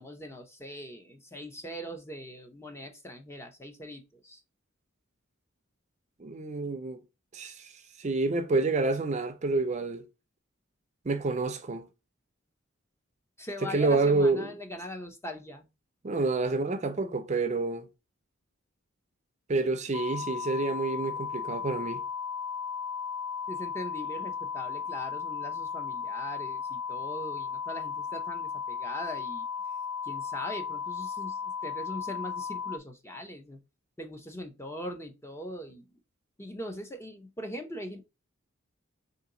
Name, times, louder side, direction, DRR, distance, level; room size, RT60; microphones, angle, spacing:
voice 1, 0.0-4.4 13.4-15.7 23.5-29.5 30.0-33.6 34.0-35.9 36.4-38.0, equal, 15° left, 0.6 m, -41 dB
voice 2, 6.2-7.0 7.3-7.7 8.0-10.0 11.0-11.9 13.7-14.5 16.0-17.9 19.5-22.0, right 3 dB, 35° right, 0.5 m, -28 dB
sound 1, 19.9-32.8, left 6 dB, 75° left, 0.3 m, -35 dB
3.7 x 2.9 x 3.7 m
head